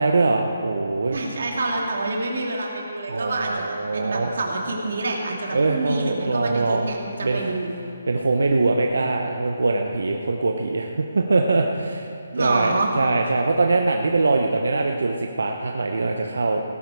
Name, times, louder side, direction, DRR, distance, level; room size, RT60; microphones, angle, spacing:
voice 1, 0.0-1.2 3.1-4.3 5.5-6.9 7.2-7.5 8.1-12.1 12.4-16.6, right 3 dB, 85° right, 2 dB, 1.0 m, -22 dB
voice 2, 1.1-7.8 12.3-12.9, right 2 dB, 50° right, -1 dB, 2.4 m, -27 dB
17.0 x 11.5 x 4.9 m, 2.6 s
hypercardioid pair, 180°, 0 cm